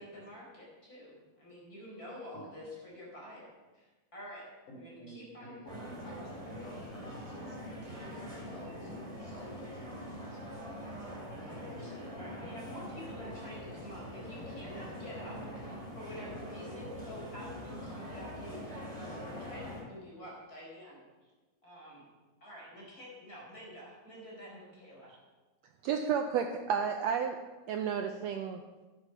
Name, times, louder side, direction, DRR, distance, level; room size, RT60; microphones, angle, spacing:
voice 1, 0.0-4.4 4.7-5.7 11.0-21.1 21.6-22.0 22.4-25.2, equal, 25° left, -4 dB, 5.2 m, -48 dB
voice 2, 4.7-10.7, equal, 70° left, -1 dB, 4.9 m, -51 dB
sound 1, 5.7-19.8, equal, 10° right, 2.4 m, -43 dB
voice 3, 25.8-27.4 27.7-28.6, right 7 dB, 90° right, 5 dB, 1.5 m, -31 dB
12.5 x 9.8 x 5.6 m, 1.2 s
omnidirectional pair, 3.8 m